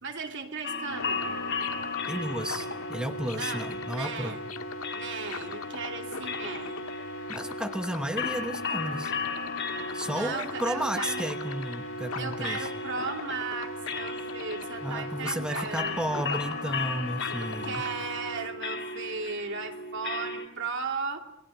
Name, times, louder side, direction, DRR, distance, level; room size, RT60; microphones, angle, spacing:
voice 1, 0.0-1.4 3.3-4.4 4.9-6.9 10.1-11.3 12.2-16.3 17.6-21.2, right 5 dB, 60° right, 4 dB, 2.7 m, -36 dB
sound 1, 0.6-20.5, left 3 dB, 60° left, 3.0 m, -36 dB
sound 2, 0.9-18.5, left 3 dB, 80° left, 1.7 m, -39 dB
voice 2, 2.1-4.4 7.3-9.1 9.9-12.7 14.8-17.8, equal, 5° right, 6 dB, 1.0 m, -33 dB
28.0 x 22.0 x 7.9 m, 0.88 s
head